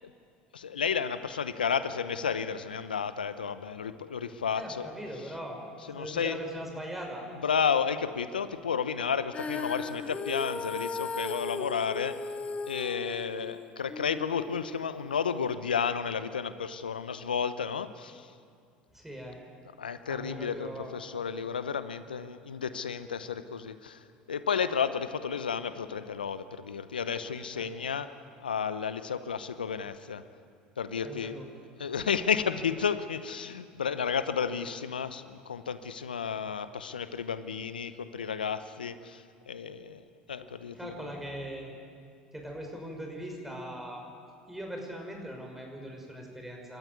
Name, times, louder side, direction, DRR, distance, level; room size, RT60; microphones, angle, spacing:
voice 1, 0.5-4.9 5.9-6.4 7.4-12.2 12.7-18.3 19.8-28.1 28.4-30.2 30.8-31.4 31.8-40.9, left 6 dB, 85° left, 13 dB, 0.9 m, -32 dB
voice 2, 4.5-5.6 6.0-7.3 18.9-19.4 20.1-20.9 27.5-27.7 31.0-31.4 40.7-41.7 42.3-44.0 44.5-46.8, equal, 5° right, 1 dB, 6.1 m, -40 dB
Female singing, 9.3-15.6, left 4 dB, 25° left, 1.5 m, -37 dB
28.5 x 13.5 x 9.6 m, 2.2 s
hypercardioid pair, 70°, 5 cm